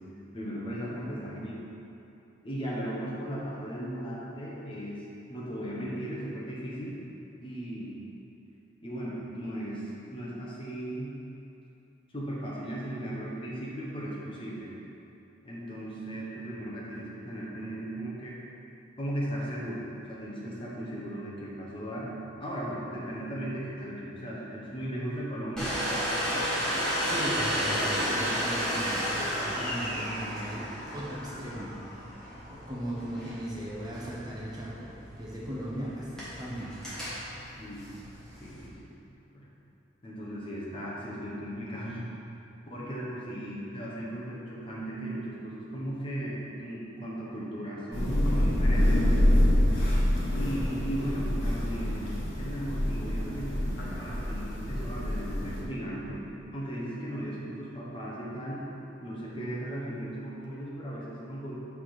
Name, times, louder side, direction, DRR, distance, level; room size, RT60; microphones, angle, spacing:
voice 1, 0.3-1.5 2.4-5.0 5.3-7.0 7.4-7.9 8.8-11.1 12.1-14.7 15.4-18.4 19.0-22.1 22.4-25.8 37.6-37.9 38.4-38.9 39.3-39.5 40.0-42.0 42.7-49.1 50.3-58.6 59.0-61.6, right 1 dB, 30° left, -6 dB, 1.0 m, -37 dB
Domestic sounds home sounds, 25.6-38.7, equal, 5° left, 1.5 m, -33 dB
voice 2, 27.0-29.1 29.4-32.0 32.5-36.7, equal, 20° right, -7 dB, 1.0 m, -37 dB
Thunder / Rain, 47.9-55.6, left 1 dB, 90° left, 1.2 m, -26 dB
5.9 x 4.4 x 4.8 m, 2.8 s
head